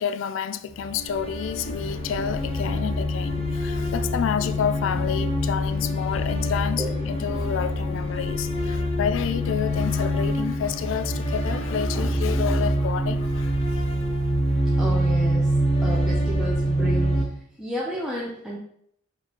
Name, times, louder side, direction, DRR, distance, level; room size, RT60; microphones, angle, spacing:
voice 1, 0.0-13.8, left 7 dB, 70° left, 0.3 m, -29 dB
sound 1, 0.7-17.2, equal, 30° left, 0.8 m, -25 dB
voice 2, 6.8-7.1 11.9-12.4 14.8-15.5 15.8-18.6, equal, 5° right, 0.5 m, -32 dB
4.6 x 3.4 x 2.8 m
head